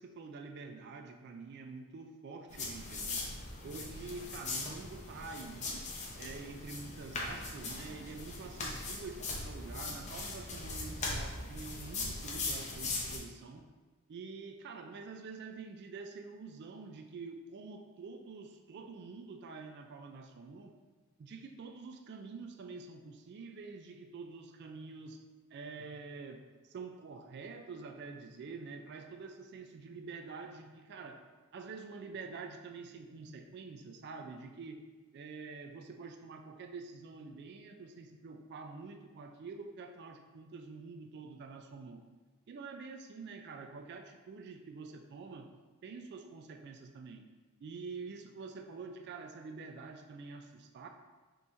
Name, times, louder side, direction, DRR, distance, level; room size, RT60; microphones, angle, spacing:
voice 1, 0.0-3.3 3.6-13.7 14.1-20.7 21.2-25.2 25.5-31.2 31.5-34.8 35.1-42.0 42.5-45.5 45.8-47.3 47.6-50.9, right 4 dB, 50° right, 5 dB, 0.3 m, -47 dB
sound 1, 2.5-13.2, left 3 dB, 35° left, 0.6 m, -40 dB
5.4 x 3.1 x 2.6 m, 1.3 s
head